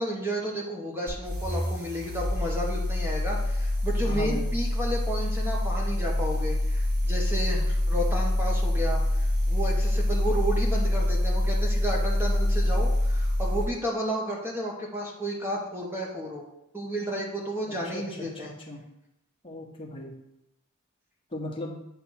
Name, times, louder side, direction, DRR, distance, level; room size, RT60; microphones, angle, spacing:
voice 1, 0.0-16.4 16.7-18.5, right 1 dB, 10° right, -2 dB, 1.1 m, -32 dB
sound 1, 1.1-13.7, left 1 dB, 50° right, 1.6 m, -26 dB
voice 2, 4.0-4.5 17.6-18.8 19.4-20.1 21.3-21.8, left 1 dB, 25° left, -2 dB, 1.4 m, -37 dB
8.8 x 3.5 x 6.1 m, 0.86 s
head